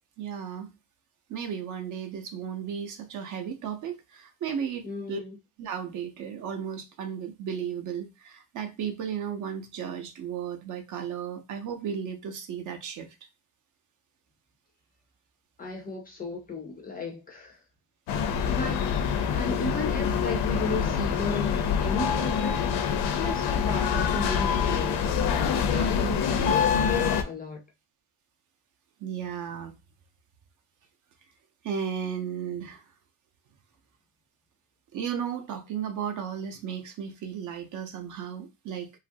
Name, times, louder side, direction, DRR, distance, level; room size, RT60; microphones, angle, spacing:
voice 1, 0.2-0.7 1.3-5.2 5.6-13.2 23.9-24.0 29.0-29.7 31.6-32.9 34.9-38.9, right 8 dB, 45° right, 0.5 m, -34 dB
voice 2, 4.8-5.4 15.6-17.6 18.5-22.6 23.2-27.6, left 2 dB, 20° left, 0.4 m, -35 dB
sound 1, 18.1-27.2, left 7 dB, 70° left, 0.6 m, -25 dB
2.9 x 2.4 x 2.6 m
cardioid pair, 170°, 42 cm